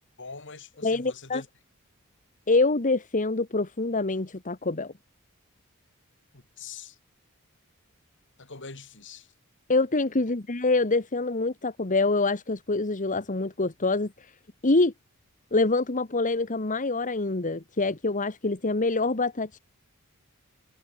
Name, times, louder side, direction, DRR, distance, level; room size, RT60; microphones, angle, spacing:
voice 1, 0.2-1.5 6.3-7.0 8.4-9.3, left 4 dB, 60° left, 5.5 m, -43 dB
voice 2, 0.8-1.4 2.5-4.9 9.7-14.3 14.6-14.9 15.5-19.6, left 3 dB, 35° left, 1.4 m, -25 dB
head